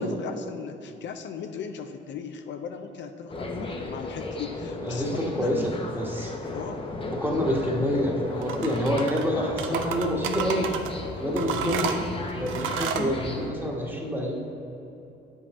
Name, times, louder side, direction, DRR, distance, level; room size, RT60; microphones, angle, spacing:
voice 1, 0.0-5.5 6.5-6.9 11.6-11.9 12.3-12.4, left 6 dB, 65° left, 7 dB, 0.5 m, -37 dB
sound 1, 3.3-13.5, left 2 dB, 25° left, 0.7 m, -34 dB
voice 2, 4.8-6.3 7.1-10.7 11.2-11.9 12.3-14.3, equal, 10° right, -1 dB, 1.2 m, -27 dB
sound 2, 8.4-9.3 9.6-10.9 11.4-13.1, right 6 dB, 75° right, 0.5 m, -31 dB
8.2 x 5.4 x 3.5 m, 2.9 s
cardioid pair, 90°, 20 cm